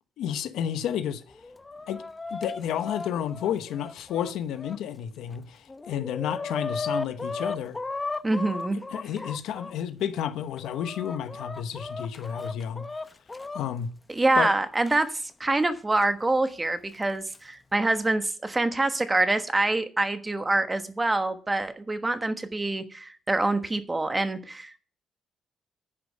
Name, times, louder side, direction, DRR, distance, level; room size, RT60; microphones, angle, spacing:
voice 1, 0.2-1.2 1.9-2.0 2.3-7.8 8.9-12.9 13.5-13.9 14.3-14.5, left 9 dB, 85° left, 0.9 m, -31 dB
Chicken rooster, 1.3-4.8 5.3-5.4 5.7-9.7 10.3-13.6 14.9-15.0 16.0-16.1 17.0-17.4, left 3 dB, 20° left, 0.7 m, -36 dB
voice 2, 8.2-8.8 14.1-24.8, right 2 dB, 20° right, 1.3 m, -26 dB
10.0 x 5.2 x 8.2 m
cardioid pair, 90°, 0 cm